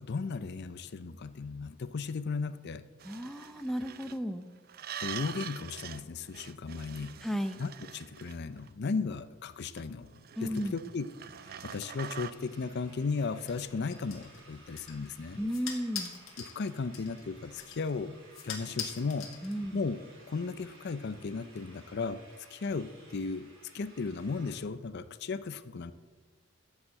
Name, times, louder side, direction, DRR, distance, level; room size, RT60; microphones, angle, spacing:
voice 1, 0.0-2.9 5.0-7.2 7.6-10.1 10.4-11.1 11.6-15.4 16.4-18.1 18.4-19.3 19.7-20.0 20.3-22.2 22.5-23.5 23.7-25.9, left 4 dB, 50° left, 13 dB, 0.5 m, -35 dB
voice 2, 3.0-4.5 7.2-7.6 10.4-10.8 15.4-16.1 19.4-19.8, equal, ahead, 8 dB, 0.6 m, -34 dB
sound 1, 3.0-4.2 4.7-6.0 6.3-8.7 9.8-12.3, right 9 dB, 45° right, 0.5 m, -44 dB
sound 2, 11.4-24.6, right 2 dB, 70° right, 4.7 m, -58 dB
sound 3, 13.5-19.9, left 7 dB, 70° left, 1.9 m, -44 dB
12.5 x 7.3 x 7.6 m, 1.4 s
head